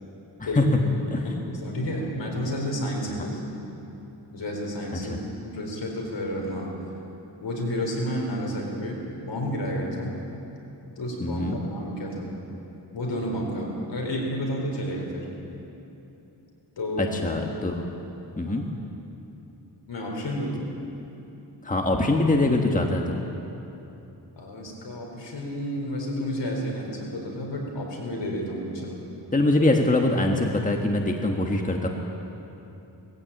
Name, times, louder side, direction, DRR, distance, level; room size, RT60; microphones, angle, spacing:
voice 1, 0.5-0.8 1.2-3.7 4.3-6.8 7.4-10.2 11.0-12.4 12.9-15.3 16.8-17.1 18.4-18.6 19.9-20.6 24.4-29.0, equal, 70° left, -1 dB, 4.4 m, -31 dB
voice 2, 1.1-1.4 4.9-5.2 11.2-11.6 17.0-17.8 18.4-18.6 21.6-23.2 29.3-31.9, left 2 dB, 15° left, 2 dB, 1.4 m, -23 dB
19.5 x 15.0 x 8.8 m, 3.0 s
wide cardioid pair, 120°, 45 cm